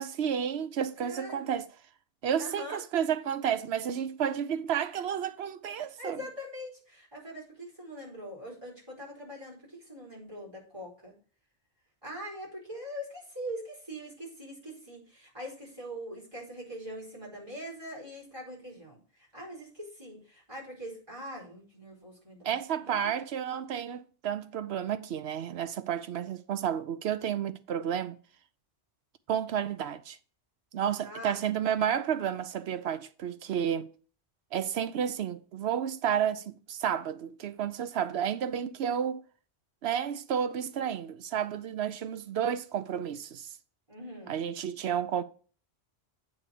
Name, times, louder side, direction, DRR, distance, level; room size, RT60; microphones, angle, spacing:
voice 1, 0.0-1.7 2.2-6.2 22.4-28.2 29.3-30.2 30.7-33.9 34.5-39.2 39.8-43.5 44.3-45.2, right 8 dB, 75° right, 0.9 m, -31 dB
voice 2, 1.0-1.6 2.4-2.8 6.0-11.1 12.0-23.0 31.0-31.4 43.9-44.4, equal, 25° right, 3.9 m, -42 dB
8.6 x 4.2 x 6.8 m
omnidirectional pair, 1.1 m